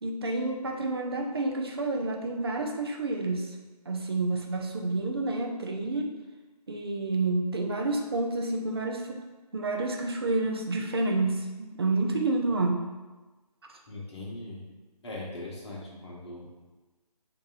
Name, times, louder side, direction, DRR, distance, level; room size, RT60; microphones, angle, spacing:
voice 1, 0.0-3.6 3.9-6.1 6.7-9.2 9.5-12.8, right 2 dB, 40° right, 2 dB, 0.4 m, -29 dB
voice 2, 13.9-14.6 15.0-16.5, left 2 dB, 40° left, -4 dB, 0.9 m, -40 dB
2.7 x 2.6 x 3.8 m, 1.2 s
figure-of-eight pair, 150°, 21 cm